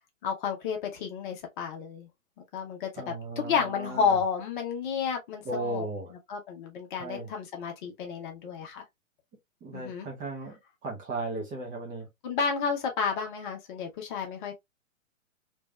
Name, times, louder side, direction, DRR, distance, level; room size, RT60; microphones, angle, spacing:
voice 1, 0.2-2.1 2.5-5.9 6.3-8.8 9.7-10.1 12.2-14.5, left 6 dB, 35° left, 1.3 m, -31 dB
voice 2, 3.0-4.2 5.4-6.1 7.0-7.3 9.6-12.1, right 2 dB, 20° right, 1.2 m, -36 dB
3.4 x 3.2 x 2.3 m
hypercardioid pair, 125°, 41 cm